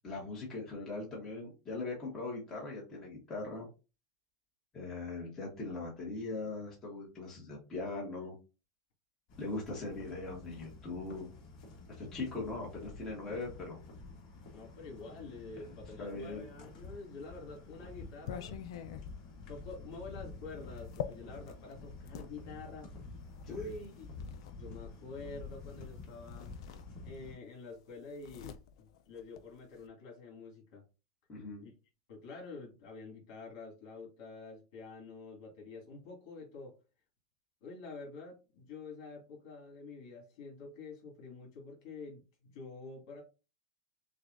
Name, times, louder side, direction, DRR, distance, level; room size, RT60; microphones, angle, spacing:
voice 1, 0.0-3.7 4.7-8.3 9.4-11.3 12.0-13.8 16.0-16.4 23.4-23.7 31.3-31.6, left 3 dB, 20° left, -4 dB, 1.4 m, -40 dB
sound 1, 9.3-27.4, left 3 dB, 45° left, 1.8 m, -49 dB
voice 2, 14.5-18.6 19.5-23.0 23.5-24.1 24.5-26.6 27.0-30.8 31.6-31.7 32.1-36.8 37.6-43.2, left 3 dB, 60° left, 0 dB, 2.4 m, -47 dB
sound 2, 17.0-22.3 23.2-24.6 25.8-25.9 26.3-27.4 27.6-29.9, left 9 dB, 75° left, 0.5 m, -46 dB
6.4 x 2.4 x 2.6 m, 0.31 s
supercardioid pair, 155°, 3 cm